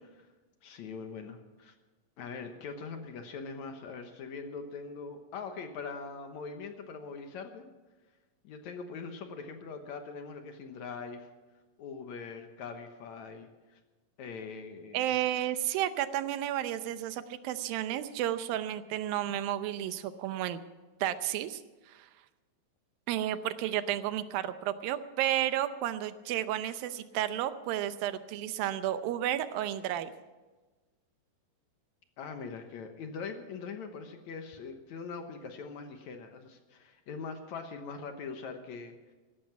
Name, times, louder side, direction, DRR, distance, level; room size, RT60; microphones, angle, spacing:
voice 1, 0.6-1.7 2.2-7.7 8.4-11.3 11.8-13.8 14.2-15.1 32.2-39.1, left 5 dB, 65° left, 6 dB, 2.1 m, -42 dB
voice 2, 14.9-20.6 21.0-21.6 21.9-22.1 23.1-30.1, right 12 dB, 85° right, 12 dB, 2.6 m, -32 dB
15.5 x 13.0 x 5.9 m, 1.2 s
omnidirectional pair, 4.1 m